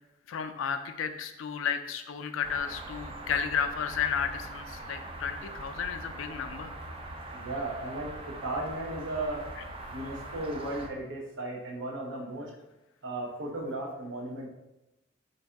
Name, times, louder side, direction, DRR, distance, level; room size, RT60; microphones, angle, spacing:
voice 1, 0.3-6.7, left 7 dB, 85° left, 8 dB, 0.4 m, -33 dB
sound 1, 2.4-10.9, right 2 dB, 30° right, 0.4 m, -42 dB
voice 2, 7.3-9.5 9.9-12.5 13.0-14.5, right 2 dB, 70° right, -1 dB, 0.7 m, -35 dB
3.9 x 2.6 x 3.4 m, 0.95 s
head